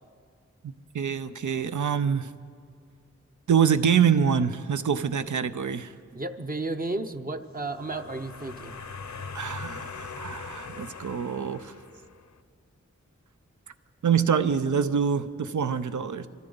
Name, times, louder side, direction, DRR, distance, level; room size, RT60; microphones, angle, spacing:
voice 1, 0.6-2.3 3.5-5.9 9.3-11.7 14.0-16.3, right 7 dB, 80° right, 11 dB, 0.6 m, -25 dB
voice 2, 6.1-8.7, right 2 dB, 30° right, 6 dB, 0.7 m, -33 dB
sound 1, 7.6-12.3, left 5 dB, 70° left, 0.7 m, -41 dB
25.5 x 13.5 x 3.9 m, 2.2 s
wide cardioid pair, 55°, 30 cm